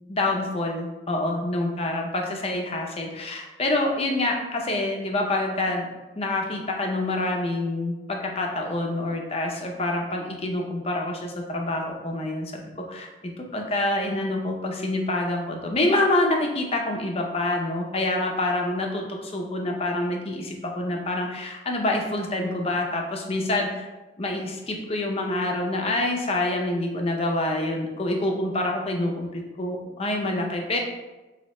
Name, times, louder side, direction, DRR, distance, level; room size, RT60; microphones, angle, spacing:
voice 1, 0.1-5.9 6.2-12.6 12.9-13.1 13.4-23.9 24.2-30.8, left 2 dB, 35° left, 1 dB, 0.6 m, -26 dB
3.0 x 2.7 x 4.2 m, 1.1 s
head